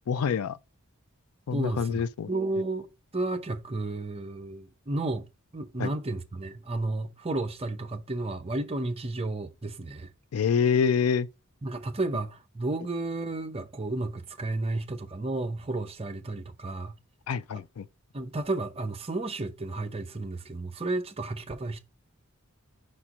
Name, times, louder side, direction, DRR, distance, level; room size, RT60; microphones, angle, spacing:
voice 1, 0.1-0.6 1.5-2.3 5.8-5.9 10.3-11.3 17.3-17.8, left 6 dB, 75° left, 0.4 m, -26 dB
voice 2, 1.5-2.9 3.1-5.3 5.5-10.1 11.6-17.0 18.1-21.8, right 2 dB, 30° right, 0.7 m, -32 dB
5.1 x 4.4 x 4.8 m
head